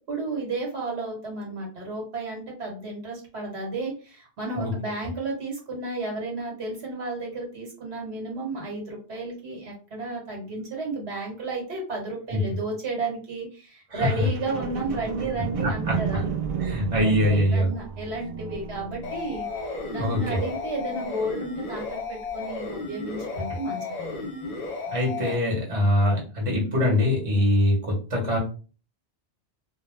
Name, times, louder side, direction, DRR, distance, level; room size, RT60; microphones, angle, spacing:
voice 1, 0.1-16.4 17.0-24.3, right 2 dB, 70° right, -1 dB, 1.3 m, -33 dB
voice 2, 13.9-14.3 15.6-16.2 16.6-17.7 20.0-20.4 24.9-28.4, left 1 dB, 30° right, -2 dB, 1.0 m, -23 dB
sound 1, 14.2-21.7 22.2-22.3, right 6 dB, 55° right, 0.4 m, -33 dB
sound 2, 19.0-25.3, left 3 dB, 45° left, 0.7 m, -34 dB
2.2 x 2.2 x 3.2 m, 0.36 s
omnidirectional pair, 1.1 m